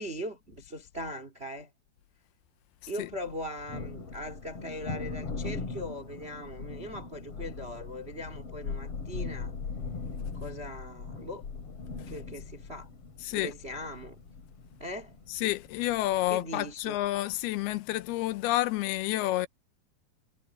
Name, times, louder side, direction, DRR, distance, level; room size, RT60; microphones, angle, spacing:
voice 1, 0.0-1.7 2.9-9.5 10.3-11.4 12.1-12.9 13.3-14.2 14.8-15.1 16.3-17.0 19.1-19.2, equal, 70° right, 0.6 m, -40 dB
Thunder, 3.2-16.4, left 4 dB, 40° left, 2.8 m, -40 dB
voice 2, 15.3-19.5, left 16 dB, 80° left, 2.5 m, -29 dB
omnidirectional pair, 5.1 m